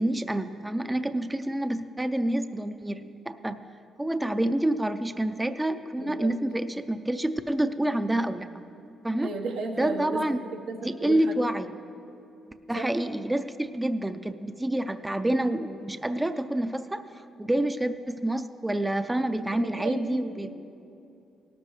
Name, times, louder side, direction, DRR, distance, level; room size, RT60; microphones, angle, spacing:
voice 1, 0.0-3.7 4.0-8.6 9.0-9.3 9.8-10.4 10.8-11.7 12.5-20.5, right 1 dB, 10° right, 10 dB, 0.4 m, -28 dB
voice 2, 6.0-6.3 9.2-10.2 10.7-11.2 12.7-12.9 19.6-20.1 20.4-20.5, right 4 dB, 85° right, 2 dB, 1.1 m, -34 dB
17.5 x 13.0 x 3.2 m, 2.7 s
cardioid pair, 90°, 0 cm